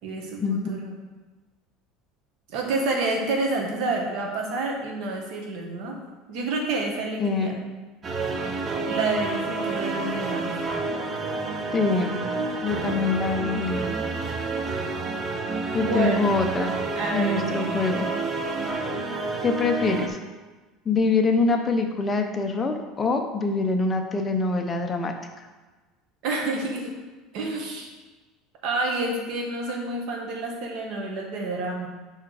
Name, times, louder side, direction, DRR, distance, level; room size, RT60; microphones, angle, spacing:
voice 1, 0.0-0.9 2.5-6.0 6.3-7.6 8.8-10.5 15.8-16.4 16.9-17.8 26.2-27.0 27.3-27.9 28.6-31.9, right 2 dB, 65° right, 0 dB, 1.5 m, -29 dB
voice 2, 7.2-7.5 11.7-12.1 12.6-13.9 15.7-16.7 17.1-18.1 19.4-20.2 20.8-25.5, left 3 dB, 20° left, 4 dB, 0.7 m, -24 dB
sound 1, 8.0-20.1, right 3 dB, 25° right, 0.8 m, -29 dB
5.7 x 4.5 x 4.9 m, 1.2 s
cardioid pair, 140°, 0 cm